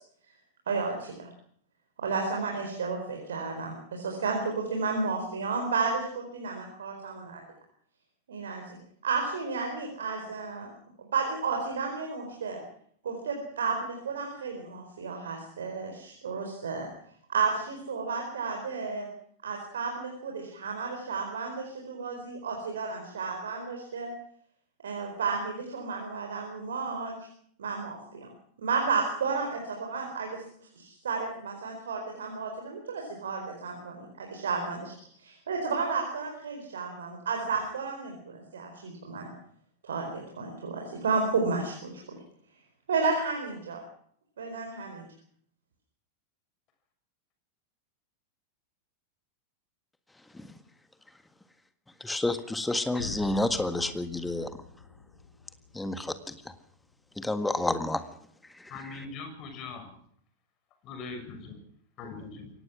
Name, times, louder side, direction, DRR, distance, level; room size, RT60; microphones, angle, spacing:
voice 1, 0.7-1.3 2.0-7.4 8.3-8.8 9.0-10.7 11.0-12.6 13.0-16.9 17.3-19.1 19.4-24.1 24.8-27.1 27.6-28.3 28.6-30.4 30.7-34.9 35.2-39.3 39.8-41.9 42.9-43.8 44.4-45.0, right 4 dB, 65° right, 2 dB, 4.4 m, -32 dB
voice 2, 52.0-54.5 55.7-56.5 57.2-58.0 58.6-58.7, left 2 dB, 5° left, 10 dB, 1.7 m, -30 dB
sound 1, 53.0-56.9, left 5 dB, 70° left, 2.3 m, -45 dB
voice 3, 58.7-59.9 60.8-61.6 62.0-62.5, left 4 dB, 35° left, 6 dB, 6.6 m, -41 dB
23.0 x 18.0 x 6.2 m, 0.62 s
figure-of-eight pair, 90°, 0 cm